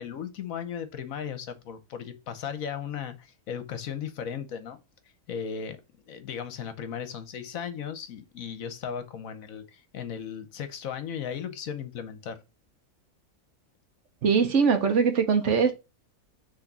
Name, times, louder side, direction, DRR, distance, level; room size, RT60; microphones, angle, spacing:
voice 1, 0.0-4.8 5.3-5.8 6.1-12.4, left 8 dB, 65° left, 1.2 m, -36 dB
voice 2, 14.2-15.7, right 6 dB, 55° right, 1.2 m, -22 dB
6.3 x 3.3 x 5.9 m
omnidirectional pair, 1.6 m